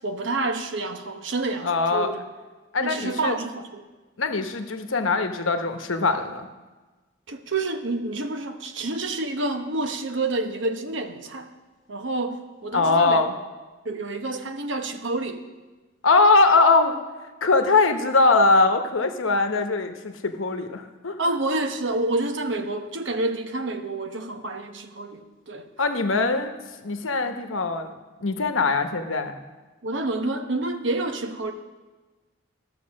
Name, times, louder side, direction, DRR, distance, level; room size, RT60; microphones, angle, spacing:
voice 1, 0.0-2.2 2.8-3.8 7.3-11.5 11.9-13.2 13.8-15.4 21.2-25.7 29.8-31.5, right 2 dB, 65° right, 6 dB, 0.9 m, -28 dB
voice 2, 1.6-2.1 2.7-3.3 4.2-6.5 12.7-13.3 16.0-17.0 17.4-21.2 25.8-26.5 26.8-27.9 28.2-29.3, left 3 dB, 80° left, 7 dB, 1.0 m, -21 dB
14.0 x 6.6 x 6.3 m, 1.3 s
head